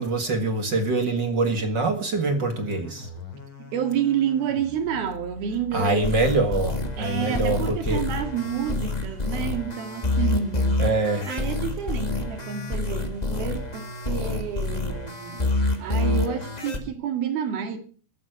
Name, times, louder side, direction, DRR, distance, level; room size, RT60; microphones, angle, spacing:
voice 1, 0.0-3.1 5.7-8.0 10.8-11.3, right 3 dB, 45° right, 1.5 m, -24 dB
sound 1, 2.2-9.0, left 2 dB, 35° left, 4.4 m, -43 dB
voice 2, 3.7-6.1 7.0-10.8 11.3-17.8, right 8 dB, 75° right, 4.0 m, -29 dB
sound 2, 6.0-16.8, left 2 dB, 55° left, 0.4 m, -27 dB
13.5 x 13.0 x 6.4 m
omnidirectional pair, 4.4 m